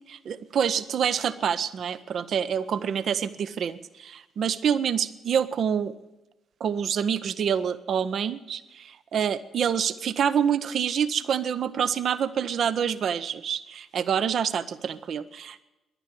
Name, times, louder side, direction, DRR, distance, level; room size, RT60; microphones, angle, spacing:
voice 1, 0.0-6.0 6.6-15.6, right 8 dB, 50° right, 14 dB, 0.6 m, -27 dB
11.0 x 9.9 x 9.7 m, 1.0 s
figure-of-eight pair, 45°, 0 cm